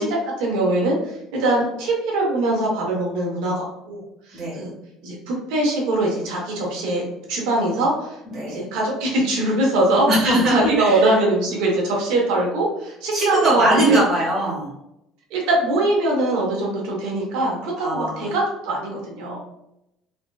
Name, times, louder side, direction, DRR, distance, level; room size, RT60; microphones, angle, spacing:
voice 1, 0.0-4.0 4.3-4.7 5.0-8.2 8.5-14.0 15.3-19.4, right 2 dB, 90° right, -2 dB, 0.9 m, -22 dB
voice 2, 8.3-8.6 10.1-11.0 13.1-14.7 17.8-18.2, right 1 dB, 30° right, -6 dB, 1.1 m, -20 dB
3.4 x 2.6 x 2.2 m, 0.83 s
cardioid pair, 180°, 0 cm